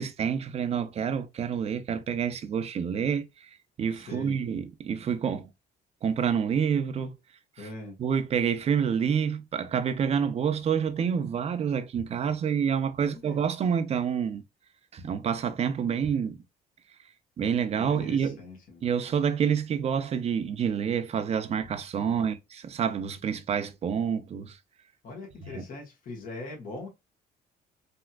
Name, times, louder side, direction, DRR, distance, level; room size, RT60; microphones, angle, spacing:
voice 1, 0.0-3.5 3.8-5.5 6.0-7.2 8.0-14.4 14.9-16.4 17.4-18.4 18.8-24.6 25.5-25.6, right 7 dB, 40° right, 0.6 m, -28 dB
voice 2, 3.9-4.4 7.6-8.0 13.0-13.4 17.7-18.8 22.1-22.3 25.0-26.9, left 2 dB, 55° left, 1.5 m, -41 dB
3.4 x 2.8 x 2.2 m
cardioid pair, 110°, 17 cm